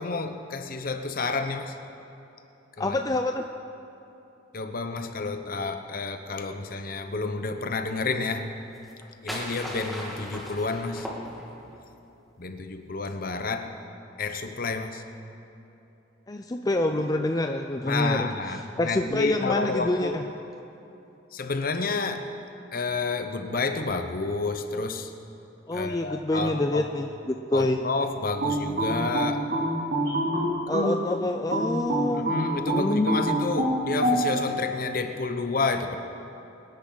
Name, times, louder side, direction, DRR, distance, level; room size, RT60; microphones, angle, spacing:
voice 1, 0.0-1.8 2.8-3.0 4.5-8.5 9.2-11.1 12.4-13.7 14.2-15.0 17.8-20.2 21.3-22.3 22.7-25.1 25.7-26.9 27.5-29.5 32.0-36.0, left 3 dB, 45° left, 7 dB, 0.9 m, -30 dB
voice 2, 2.8-3.5 16.3-18.3 18.8-20.2 25.7-27.8 30.7-33.2, left 2 dB, 20° left, 5 dB, 0.4 m, -27 dB
sound 1, 8.8-11.8, equal, ahead, 1.9 m, -37 dB
sound 2, 28.4-31.0 31.5-34.2, right 1 dB, 55° right, 3.3 m, -25 dB
24.5 x 10.5 x 4.0 m, 2.8 s
head